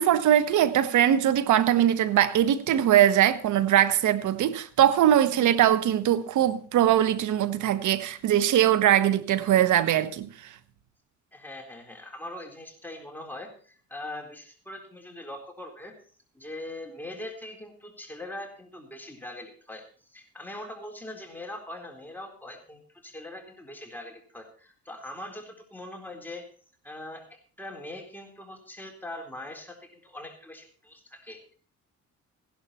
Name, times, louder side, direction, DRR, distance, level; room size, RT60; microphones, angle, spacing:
voice 1, 0.0-10.3, right 11 dB, 75° right, 1.1 m, -21 dB
voice 2, 11.3-16.0 16.3-26.5 26.8-31.5, left 1 dB, 5° left, 3.9 m, -42 dB
16.0 x 11.5 x 4.3 m
cardioid pair, 90°, 30 cm